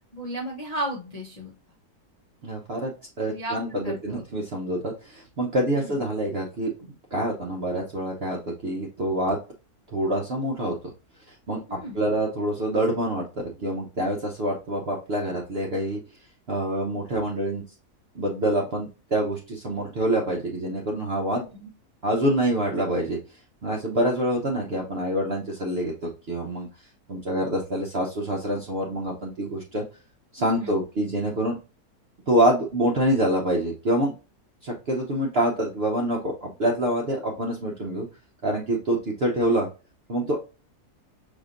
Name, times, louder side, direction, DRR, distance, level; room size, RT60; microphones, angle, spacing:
voice 1, 0.0-1.5 3.2-3.6 3.8-4.2 5.7-6.0 11.7-12.0 21.3-21.7 30.4-30.8, right 1 dB, 30° left, -4 dB, 0.8 m, -34 dB
voice 2, 2.4-2.9 3.2-6.7 7.1-9.4 9.9-10.8 11.3-13.3 13.6-16.0 16.5-17.6 18.1-21.4 22.0-23.2 23.6-25.9 26.3-26.7 27.1-29.8 30.3-31.5 32.3-34.1 34.6-38.1 38.4-39.7 40.1-40.4, right 1 dB, 45° right, -1 dB, 0.9 m, -26 dB
5.4 x 3.6 x 2.5 m, 0.32 s
omnidirectional pair, 1.7 m